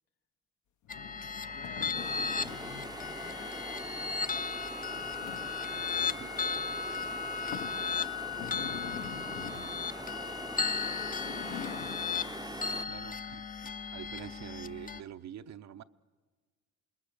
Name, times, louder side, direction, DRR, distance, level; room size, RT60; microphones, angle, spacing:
sound 1, 0.8-3.0 4.8-5.7 6.3-6.4 6.9-7.0 7.5-7.8 8.3-9.8 10.8-12.1, left 9 dB, 75° left, 1.1 m, -44 dB
sound 2, 0.9-15.0, left 6 dB, 30° left, 0.6 m, -36 dB
voice 1, 1.5-4.6 5.6-8.1 8.7-11.1 14.2-14.4, left 5 dB, 50° left, 10 dB, 1.8 m, -56 dB
sound 3, 1.9-12.8, right 3 dB, 15° right, 0.6 m, -43 dB
voice 2, 5.7-6.3 12.9-13.4 13.9-15.8, right 10 dB, 65° right, 10 dB, 0.7 m, -46 dB
27.5 x 20.5 x 6.7 m, 1.4 s
cardioid pair, 90°, 30 cm